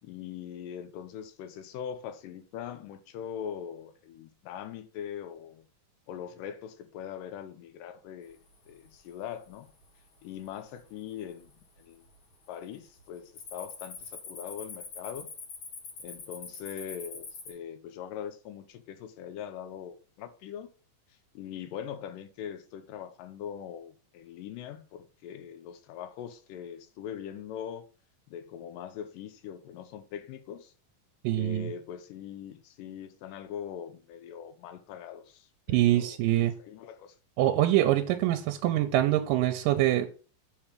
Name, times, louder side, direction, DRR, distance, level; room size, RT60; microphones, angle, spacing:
voice 1, 0.0-5.7 6.1-8.4 8.7-9.7 10.2-11.5 11.8-12.0 12.5-15.3 16.0-20.7 21.4-27.8 28.3-30.7 31.3-37.2, left 9 dB, 80° left, 2.2 m, -41 dB
Cricket, 8.5-9.0 9.4-9.9 10.5-10.6 11.2-11.8 12.0-12.3 12.7-17.5, left 5 dB, 55° left, 1.6 m, -44 dB
voice 2, 31.2-31.7 35.7-36.5 37.4-40.1, right 14 dB, 90° right, 2.2 m, -24 dB
7.1 x 3.6 x 5.0 m
omnidirectional pair, 3.8 m